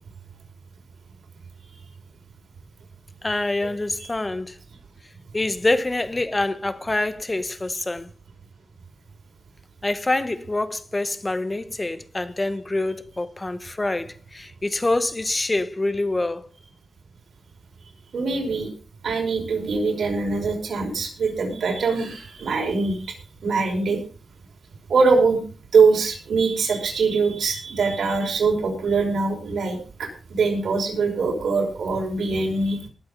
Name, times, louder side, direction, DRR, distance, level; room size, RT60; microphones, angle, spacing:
voice 1, 3.2-4.6 5.3-8.1 9.8-16.5, left 2 dB, 25° left, 1.1 m, -26 dB
voice 2, 18.1-18.7 19.0-23.1 23.4-24.0 24.9-25.4 25.7-32.9, right 4 dB, 85° right, 5.3 m, -22 dB
19.0 x 7.9 x 5.2 m
wide cardioid pair, 90°, 0 cm